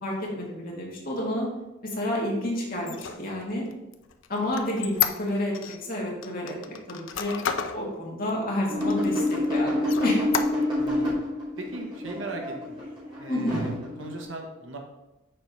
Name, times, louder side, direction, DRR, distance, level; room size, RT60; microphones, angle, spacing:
voice 1, 0.0-1.5 1.8-3.7 4.3-5.5 5.8-7.3 7.7-10.2 13.3-13.6, left 1 dB, 45° left, -3 dB, 1.9 m, -30 dB
Squeak, 2.8-5.8 6.2-7.8 8.3-8.4 8.8-9.5 9.8-10.9, left 8 dB, 65° left, 0.5 m, -31 dB
sound 1, 8.7-14.2, left 1 dB, 25° right, 2.3 m, -27 dB
voice 2, 10.8-11.2 11.6-12.8 13.2-14.8, right 2 dB, 65° right, 2 dB, 1.2 m, -38 dB
6.7 x 4.5 x 5.5 m, 1.0 s
head